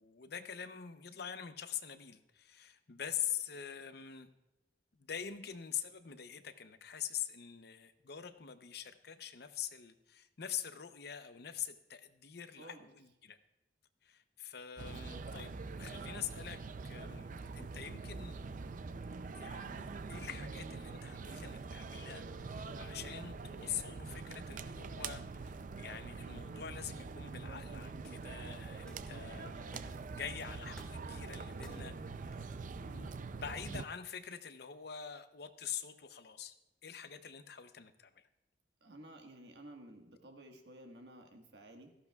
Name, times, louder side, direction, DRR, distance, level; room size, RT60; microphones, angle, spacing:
voice 1, 0.0-4.3 4.9-13.4 14.0-17.3 17.6-18.4 19.3-32.0 32.2-32.5 32.8-36.6 36.8-38.3, left 9 dB, 65° left, 0.7 m, -45 dB
voice 2, 12.6-12.9 38.8-41.9, right 1 dB, 70° right, 1.5 m, -53 dB
sound 1, 14.8-33.9, right 4 dB, 50° right, 0.4 m, -44 dB
sound 2, 26.5-32.5, equal, 5° left, 1.9 m, -59 dB
17.0 x 14.0 x 2.3 m
head